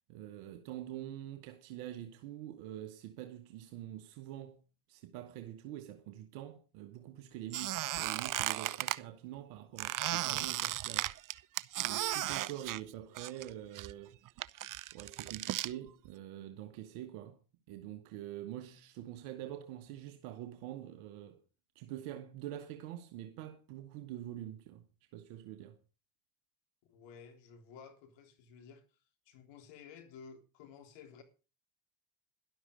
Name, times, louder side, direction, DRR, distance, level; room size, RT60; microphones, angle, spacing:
voice 1, 0.1-4.6 4.9-11.1 11.8-17.4 17.7-21.4 21.7-24.8 25.1-25.8, right 12 dB, 70° right, 1.4 m, -45 dB
Squeak, 7.5-9.0 9.8-13.5 13.8-15.7, right 14 dB, 45° right, 0.7 m, -35 dB
voice 2, 26.9-28.8 29.3-31.2, left 6 dB, 65° left, 3.5 m, -54 dB
12.5 x 11.5 x 5.2 m
hypercardioid pair, 65°, 46 cm